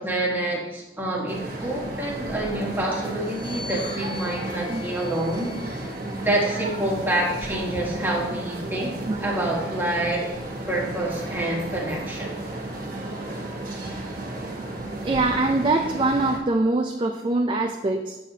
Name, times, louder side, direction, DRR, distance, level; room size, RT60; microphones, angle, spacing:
voice 1, 0.0-5.9 6.2-10.3 10.7-12.3, right 1 dB, 10° right, -3 dB, 1.3 m, -27 dB
sound 1, 1.3-16.4, right 2 dB, 50° right, 1.2 m, -33 dB
sound 2, 3.2-6.8 7.6-9.2, left 4 dB, 30° left, 1.0 m, -44 dB
voice 2, 6.0-6.3 9.1-9.5 15.0-18.2, right 2 dB, 25° right, 3 dB, 0.3 m, -24 dB
8.3 x 6.9 x 2.7 m, 1.0 s
head